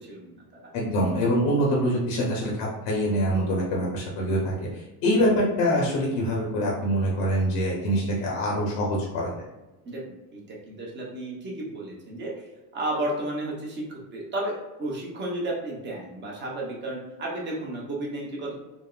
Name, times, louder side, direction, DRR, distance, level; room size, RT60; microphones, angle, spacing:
voice 1, 0.1-0.7 9.8-10.0 10.3-12.3 12.7-14.5 14.8-18.5, right 1 dB, 25° right, -3 dB, 0.8 m, -33 dB
voice 2, 0.7-9.3, equal, 50° left, -3 dB, 0.8 m, -25 dB
3.5 x 2.0 x 2.3 m, 1.1 s
cardioid pair, 130°, 47 cm